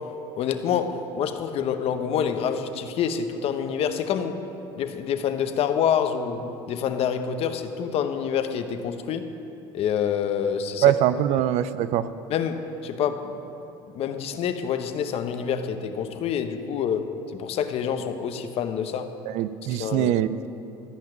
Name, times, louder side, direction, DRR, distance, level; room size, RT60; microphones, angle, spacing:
voice 1, 0.0-4.4 4.8-9.3 9.7-11.0 11.4-11.5 12.3-13.4 13.9-19.1 19.7-20.1, left 8 dB, 55° left, 8 dB, 0.9 m, -27 dB
voice 2, 10.8-12.1 19.3-20.5, right 12 dB, 65° right, 15 dB, 0.5 m, -22 dB
13.5 x 5.7 x 9.1 m, 3.0 s
supercardioid pair, 95°, 12 cm